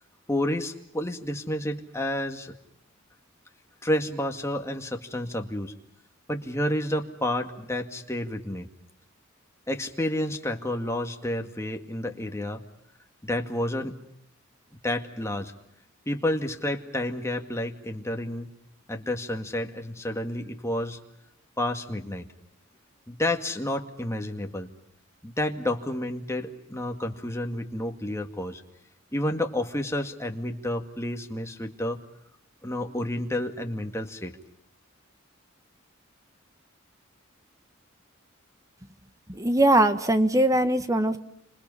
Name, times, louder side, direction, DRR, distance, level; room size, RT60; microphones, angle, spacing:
voice 1, 0.3-2.5 3.8-5.7 6.3-8.7 9.7-12.6 13.2-14.0 14.8-15.5 16.1-18.5 18.9-21.0 21.6-22.3 23.1-24.7 25.2-28.6 29.1-32.0 32.6-34.4, left 1 dB, 15° left, 4 dB, 2.1 m, -30 dB
voice 2, 39.3-41.2, right 1 dB, 15° right, 10 dB, 1.2 m, -21 dB
30.0 x 27.0 x 5.6 m, 0.77 s
head